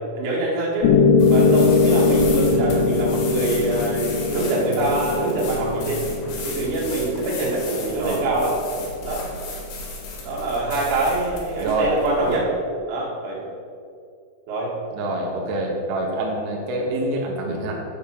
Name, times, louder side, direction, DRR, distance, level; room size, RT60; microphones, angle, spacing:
voice 1, 0.2-0.9 1.3-6.0 6.4-8.5 9.0-9.2 10.2-12.5 12.9-13.5 14.5-14.7, right 2 dB, 60° right, -5 dB, 3.2 m, -24 dB
Piano, 0.8-8.9, left 4 dB, 85° left, 3.5 m, -21 dB
sound 1, 1.2-12.4, left 3 dB, 65° left, 2.7 m, -34 dB
voice 2, 2.5-2.9 8.0-8.2 11.6-11.9 14.9-17.7, right 2 dB, 85° right, -1 dB, 1.8 m, -26 dB
8.8 x 5.3 x 5.8 m, 2.3 s
omnidirectional pair, 5.9 m